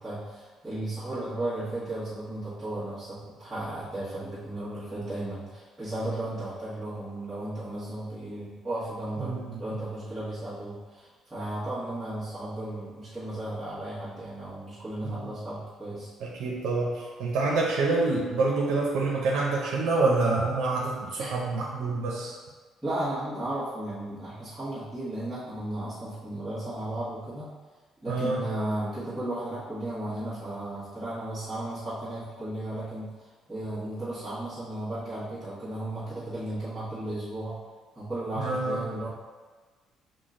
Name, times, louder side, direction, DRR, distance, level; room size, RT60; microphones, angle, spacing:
voice 1, 0.0-16.1 21.2-21.3 22.8-27.6 28.0-33.1 33.5-37.6 37.9-39.1, right 1 dB, 10° right, -15 dB, 1.3 m, -35 dB
voice 2, 9.2-9.6 15.0-15.3 16.2-22.3 28.1-28.4 38.4-38.8, right 3 dB, 90° right, -2 dB, 0.7 m, -27 dB
6.2 x 2.2 x 3.7 m, 1.4 s
cardioid pair, 170°, 0 cm